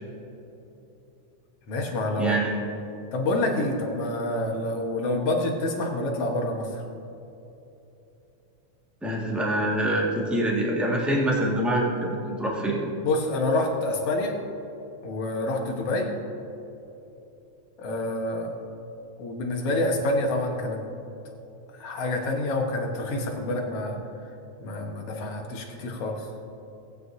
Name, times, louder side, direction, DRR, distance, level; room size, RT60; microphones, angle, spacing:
voice 1, 1.7-2.4 3.1-6.8 13.0-14.3 15.0-16.1 17.8-18.5 19.2-20.8 21.8-24.0 24.6-26.3, left 2 dB, 60° left, 1 dB, 2.2 m, -27 dB
voice 2, 2.2-2.6 9.0-12.8, right 1 dB, ahead, -4 dB, 0.8 m, -25 dB
18.5 x 9.6 x 2.7 m, 3.0 s
omnidirectional pair, 3.3 m